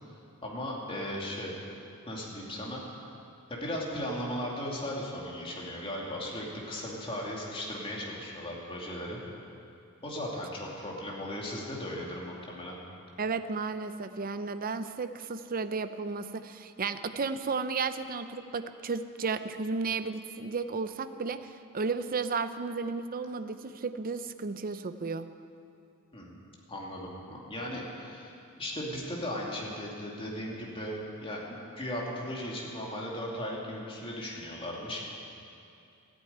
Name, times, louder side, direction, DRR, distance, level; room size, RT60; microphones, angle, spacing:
voice 1, 0.4-1.5 2.1-2.8 3.5-9.2 10.0-12.8 26.1-26.3 26.7-35.1, left 1 dB, 25° left, -3 dB, 2.6 m, -37 dB
voice 2, 13.2-25.3, right 4 dB, 40° right, 10 dB, 0.6 m, -33 dB
14.0 x 9.1 x 9.3 m, 2.6 s
head